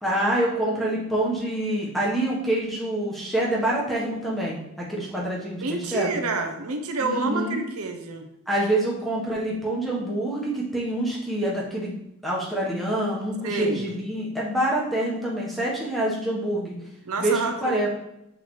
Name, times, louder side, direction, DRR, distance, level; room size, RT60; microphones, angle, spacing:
voice 1, 0.0-6.2 7.0-7.6 8.5-11.9 12.2-16.7 17.2-17.9, right 1 dB, ahead, -5 dB, 1.1 m, -26 dB
voice 2, 5.6-8.2 13.4-13.8 17.0-17.9, right 3 dB, 80° right, 5 dB, 0.8 m, -28 dB
6.4 x 4.6 x 3.2 m, 0.85 s
head